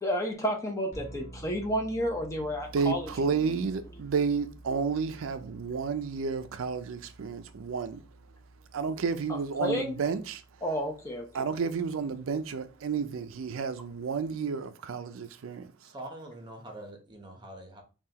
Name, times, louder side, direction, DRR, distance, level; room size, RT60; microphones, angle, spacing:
voice 1, 0.0-3.4 9.3-9.9 10.6-11.5, equal, 15° left, 0.7 m, -31 dB
sound 1, 0.9-14.3, right 1 dB, 40° left, 1.2 m, -51 dB
voice 2, 2.7-8.0 8.7-10.4 11.3-15.7, right 5 dB, 90° right, 0.4 m, -31 dB
voice 3, 15.8-17.8, right 1 dB, 25° right, 0.9 m, -44 dB
5.5 x 2.4 x 2.9 m
head